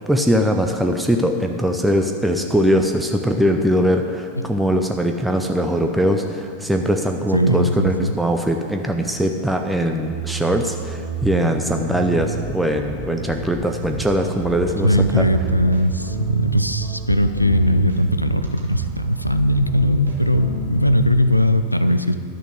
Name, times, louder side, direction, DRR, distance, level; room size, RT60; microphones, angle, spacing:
voice 1, 0.0-15.3, equal, 5° right, 4 dB, 0.6 m, -21 dB
voice 2, 7.3-8.1 14.8-22.1, left 1 dB, 90° left, 10 dB, 0.4 m, -19 dB
sound 1, 10.0-21.2, right 5 dB, 75° right, 1.6 m, -29 dB
11.0 x 6.7 x 6.2 m, 2.3 s
figure-of-eight pair, 90°, 0 cm